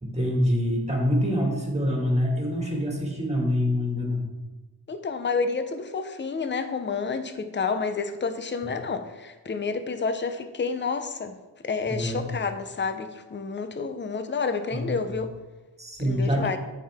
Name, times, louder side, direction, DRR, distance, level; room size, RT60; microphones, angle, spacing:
voice 1, 0.0-4.3 11.9-12.2 14.7-14.8 15.1-15.2 15.8-16.6, equal, 15° right, -1 dB, 1.9 m, -25 dB
voice 2, 4.9-11.4 11.6-15.3 16.0-16.6, left 4 dB, 30° left, 8 dB, 0.6 m, -29 dB
9.3 x 5.8 x 3.5 m, 1.1 s
wide cardioid pair, 100°, 38 cm